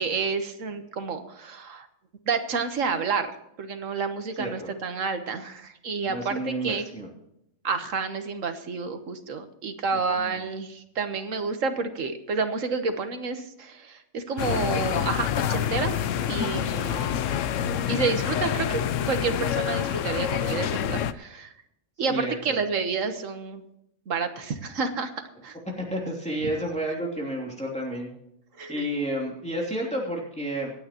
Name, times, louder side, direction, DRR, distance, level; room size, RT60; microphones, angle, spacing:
voice 1, 0.0-1.9 2.3-3.3 3.6-6.8 7.6-16.0 16.3-17.1 17.9-21.5 22.0-23.6 24.1-25.1 25.4-25.6 26.4-26.5 28.6-28.9, right 4 dB, 75° right, 8 dB, 1.6 m, -29 dB
voice 2, 4.4-4.7 6.1-7.1 9.9-10.4 22.0-22.6 25.8-28.1 28.7-30.7, right 1 dB, 5° left, -3 dB, 3.0 m, -31 dB
sound 1, 14.4-21.1, left 9 dB, 75° left, 1.0 m, -27 dB
26.0 x 9.1 x 3.0 m, 0.81 s
omnidirectional pair, 1.3 m